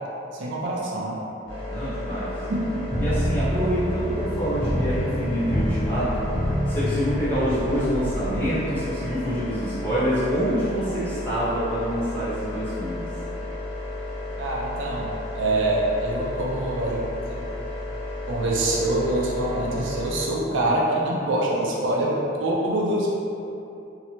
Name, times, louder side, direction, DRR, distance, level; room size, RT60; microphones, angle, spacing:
voice 1, 0.3-1.2 2.7-2.8 14.4-17.4 18.3-23.2, right 1 dB, 65° right, -4 dB, 0.4 m, -25 dB
sound 1, 1.5-20.2, left 2 dB, 70° left, 1.3 m, -33 dB
voice 2, 1.7-2.3 3.0-6.3 6.6-13.1, equal, 10° left, -13 dB, 0.8 m, -26 dB
sound 2, 2.9-8.4, equal, 45° left, 0.8 m, -27 dB
2.8 x 2.0 x 2.8 m, 2.8 s
head